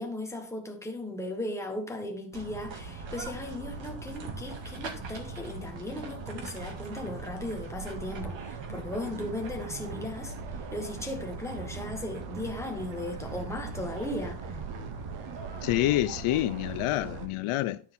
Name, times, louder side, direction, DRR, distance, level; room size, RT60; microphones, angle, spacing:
voice 1, 0.0-10.3 10.7-14.4, left 1 dB, 5° left, 1.3 m, -37 dB
sound 1, 2.3-17.3, right 3 dB, 65° right, 1.9 m, -40 dB
sound 2, 6.7-17.3, right 11 dB, 85° right, 0.9 m, -45 dB
voice 2, 15.6-17.8, left 15 dB, 90° left, 0.6 m, -27 dB
10.0 x 4.2 x 5.4 m
cardioid pair, 165°, 49 cm